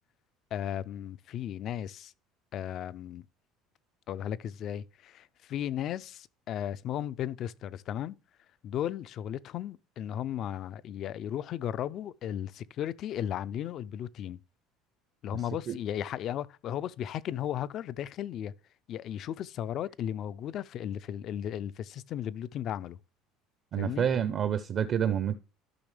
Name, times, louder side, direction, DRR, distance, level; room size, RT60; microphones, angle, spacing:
voice 1, 0.5-2.1 2.5-3.2 4.1-8.2 8.6-14.4 15.2-18.5 18.9-23.0 23.8-24.1, left 10 dB, 40° left, 0.4 m, -35 dB
voice 2, 23.7-25.4, right 8 dB, 35° right, 0.5 m, -28 dB
12.5 x 6.0 x 3.3 m
cardioid pair, 170°, 0 cm